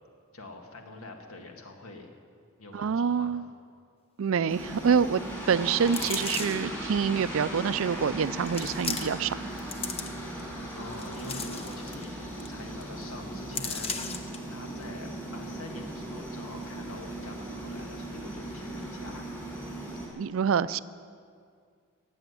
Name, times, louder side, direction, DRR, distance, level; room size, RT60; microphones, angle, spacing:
voice 1, 0.3-2.1 2.6-3.4 10.8-19.3 19.9-20.1, left 2 dB, 75° left, 3 dB, 1.9 m, -45 dB
voice 2, 2.7-3.4 4.2-5.2 5.5-9.4 20.2-20.8, right 6 dB, 65° right, 16 dB, 0.4 m, -26 dB
sound 1, 4.5-20.1, right 1 dB, 10° left, 3.1 m, -38 dB
sound 2, 5.9-6.7 7.5-7.6 8.5-9.3 9.6-10.4 10.9-12.1 12.4-12.5 12.8-13.0 13.5-14.4 14.8-14.9, left 5 dB, 25° left, 0.8 m, -36 dB
15.5 x 7.9 x 9.7 m, 2.2 s
head